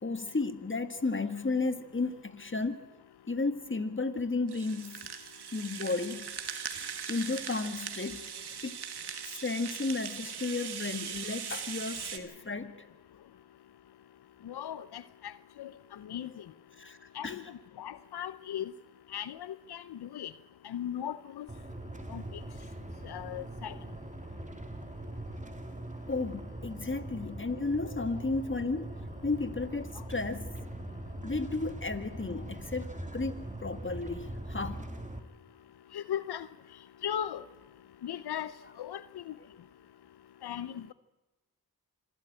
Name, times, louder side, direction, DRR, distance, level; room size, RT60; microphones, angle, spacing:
voice 1, 0.0-2.8 3.3-5.1 5.5-6.3 7.1-8.2 8.6-8.8 9.3-12.8 16.8-17.0 17.2-17.4 26.1-28.9 29.2-30.7 31.2-32.9 33.1-34.8, left 3 dB, 30° left, 10 dB, 1.9 m, -33 dB
Rattle (instrument), 4.5-12.2, right 7 dB, 90° right, 1.7 m, -40 dB
voice 2, 14.4-15.3 15.6-16.4 17.1-17.4 17.8-18.7 19.1-20.3 20.6-21.5 22.1-22.4 23.0-23.7 35.9-36.5 37.0-37.4 38.0-38.5 38.8-39.3 40.4-40.9, left 10 dB, 85° left, 15 dB, 0.7 m, -38 dB
sound 1, 21.5-35.2, right 1 dB, 20° right, 2.3 m, -42 dB
26.0 x 12.5 x 8.8 m, 1.1 s
cardioid pair, 50°, 38 cm